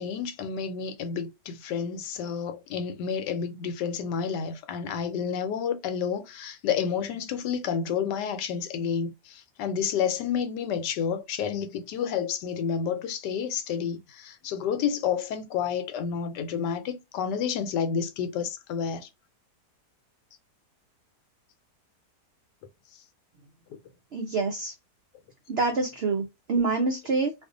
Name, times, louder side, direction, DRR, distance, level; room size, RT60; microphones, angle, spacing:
voice 1, 0.0-19.1, left 7 dB, 85° left, 1.2 m, -30 dB
voice 2, 24.1-24.7 25.5-27.3, right 3 dB, 80° right, 0.5 m, -26 dB
2.6 x 2.4 x 3.7 m
omnidirectional pair, 1.8 m